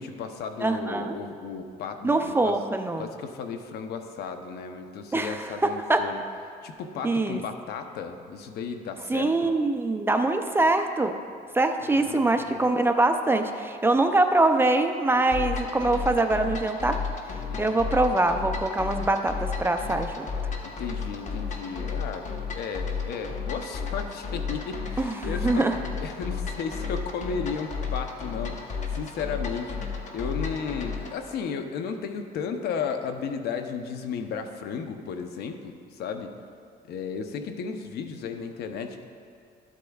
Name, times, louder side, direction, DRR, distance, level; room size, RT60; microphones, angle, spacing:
voice 1, 0.0-2.6 3.0-6.2 6.6-9.5 11.8-12.6 17.5-17.8 20.6-25.6 26.0-29.8 30.1-36.3 36.9-39.0, left 6 dB, 70° left, 7 dB, 0.7 m, -34 dB
voice 2, 0.6-1.2 2.0-3.1 5.1-6.0 7.0-7.4 9.1-11.1 11.5-17.0 17.6-20.3 25.0-25.8, right 2 dB, 15° right, 6 dB, 0.4 m, -24 dB
sound 1, 15.3-31.2, left 5 dB, 45° left, 1.1 m, -33 dB
13.0 x 8.3 x 2.3 m, 2.3 s
cardioid pair, 110°, 17 cm